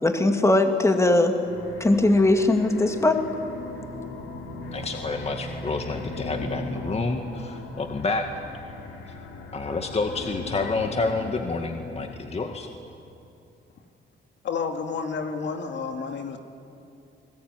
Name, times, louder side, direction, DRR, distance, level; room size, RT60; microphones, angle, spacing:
voice 1, 0.0-1.4 1.8-3.2, left 2 dB, 15° left, 5 dB, 2.5 m, -20 dB
sound 1, 1.4-12.2, left 2 dB, 90° left, 3.7 m, -38 dB
voice 2, 4.7-8.3 9.0-9.2 9.5-12.7, left 3 dB, 30° left, 4 dB, 2.0 m, -29 dB
voice 3, 14.4-16.4, left 5 dB, 65° left, 5 dB, 2.3 m, -30 dB
29.5 x 20.0 x 9.7 m, 2.7 s
cardioid pair, 90°, 20 cm